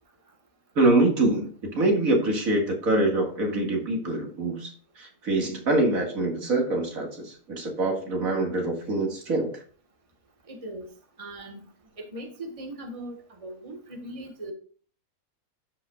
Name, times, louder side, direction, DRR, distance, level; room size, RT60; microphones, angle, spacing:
voice 1, 0.8-9.6, right 2 dB, 70° right, 1 dB, 2.3 m, -25 dB
voice 2, 10.5-10.9 11.2-11.6 12.0-14.5, right 1 dB, 25° right, 3 dB, 1.5 m, -39 dB
12.5 x 5.9 x 2.4 m, 0.42 s
omnidirectional pair, 1.5 m